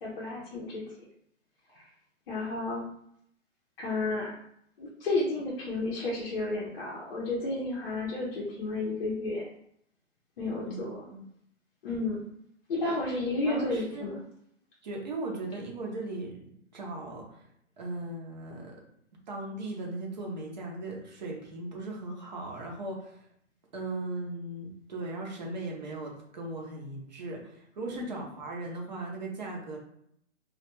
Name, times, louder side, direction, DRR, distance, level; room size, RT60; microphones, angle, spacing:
voice 1, 0.0-0.8 1.7-1.8 2.3-2.8 3.8-4.3 4.8-9.4 10.4-11.1 11.8-12.2 12.7-14.1 27.9-28.0, left 2 dB, 45° left, -5 dB, 0.6 m, -32 dB
voice 2, 10.6-11.2 13.4-14.2 14.8-16.4 16.7-17.5 17.8-18.8 19.3-23.2 23.7-29.8, right 2 dB, 35° right, -1 dB, 0.6 m, -38 dB
2.3 x 2.1 x 2.9 m, 0.71 s
hypercardioid pair, 160°, 38 cm